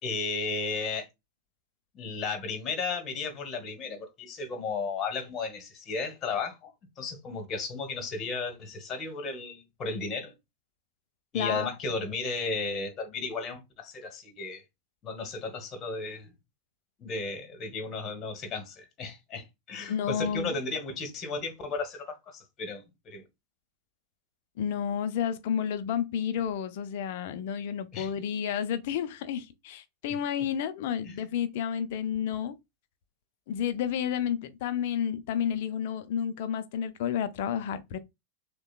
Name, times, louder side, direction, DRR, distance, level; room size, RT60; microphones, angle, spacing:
voice 1, 0.0-1.1 1.9-10.3 11.3-14.6 15.0-16.3 17.0-23.2 27.9-28.1 31.0-31.2, left 4 dB, 30° left, 1.3 m, -34 dB
voice 2, 11.3-11.7 19.9-20.5 24.6-32.6 33.5-38.0, left 8 dB, 50° left, 0.5 m, -31 dB
6.3 x 2.2 x 2.4 m
figure-of-eight pair, 90°, 0 cm